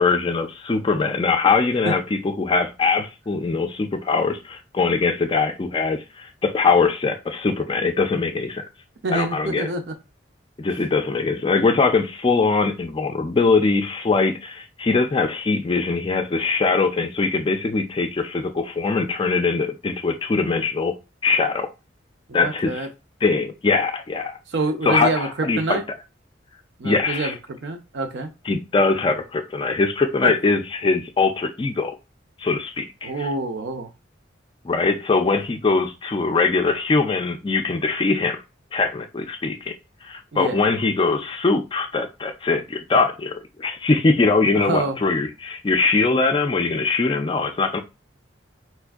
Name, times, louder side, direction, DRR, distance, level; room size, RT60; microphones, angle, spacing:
voice 1, 0.0-8.6 9.1-9.7 10.6-20.9 21.2-21.7 22.3-22.9 23.2-24.4 24.8-25.8 26.8-27.3 28.5-32.0 32.4-33.3 34.6-38.4 38.7-39.7 40.0-43.3 43.6-47.8, left 4 dB, 25° left, 6 dB, 0.3 m, -22 dB
voice 2, 9.0-9.9 22.3-22.9 24.5-25.8 26.8-28.3 30.2-30.3 33.0-33.9 40.3-40.6 44.5-45.0, right 2 dB, 65° right, 5 dB, 0.6 m, -26 dB
4.4 x 2.5 x 2.3 m, 0.28 s
head